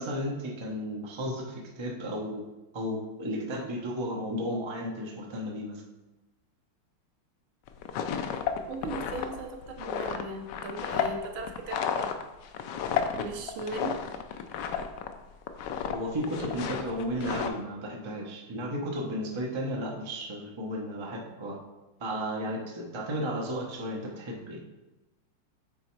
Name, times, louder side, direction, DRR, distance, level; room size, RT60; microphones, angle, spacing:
voice 1, 0.0-2.4 2.7-5.8 15.9-21.6 22.0-24.6, equal, 40° right, -1 dB, 0.4 m, -34 dB
sound 1, 7.7-15.1 15.4-16.0 16.2-17.5, left 8 dB, 75° left, 1.0 m, -32 dB
voice 2, 8.7-12.3 13.2-14.0, right 2 dB, 70° right, 4 dB, 1.5 m, -38 dB
7.8 x 4.1 x 4.6 m, 1.1 s
omnidirectional pair, 2.3 m